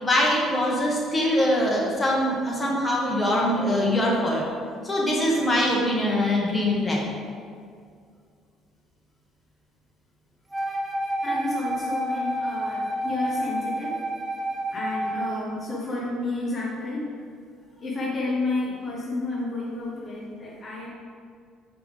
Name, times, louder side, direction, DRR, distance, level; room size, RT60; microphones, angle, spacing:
voice 1, 0.0-4.5 4.8-7.1, left 1 dB, 15° left, -3 dB, 1.6 m, -23 dB
Wind instrument woodwind instrument, 10.5-15.4, right 1 dB, 20° right, 1.0 m, -29 dB
voice 2, 11.2-14.0 14.7-17.2 17.8-20.9, left 2 dB, 35° left, -5 dB, 1.3 m, -31 dB
6.8 x 5.1 x 3.4 m, 2.2 s
figure-of-eight pair, 50°, 0 cm